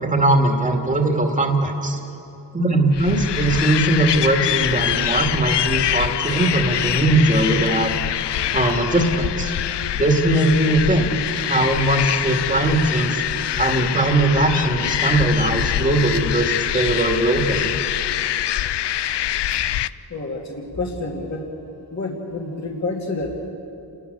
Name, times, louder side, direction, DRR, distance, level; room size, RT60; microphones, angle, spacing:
voice 1, 0.0-2.0 2.5-7.9 8.5-9.5 9.9-11.1 11.3-13.2 13.6-17.7, right 2 dB, 20° right, 2 dB, 2.2 m, -20 dB
sound 1, 2.9-19.9, left 11 dB, 80° left, 0.6 m, -24 dB
voice 2, 20.1-21.4 21.9-23.5, left 2 dB, 40° left, -1 dB, 2.6 m, -28 dB
30.0 x 20.0 x 6.8 m, 2.8 s
wide cardioid pair, 120°, 41 cm